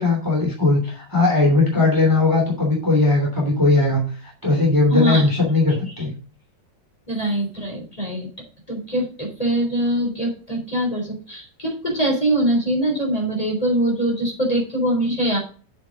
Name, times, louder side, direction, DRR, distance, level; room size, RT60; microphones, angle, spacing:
voice 1, 0.0-6.1, left 2 dB, 10° right, -2 dB, 2.8 m, -19 dB
voice 2, 4.9-5.2 7.1-8.3 8.7-15.4, right 1 dB, 20° left, 0 dB, 3.7 m, -23 dB
7.9 x 6.3 x 5.1 m, 0.40 s
omnidirectional pair, 1.9 m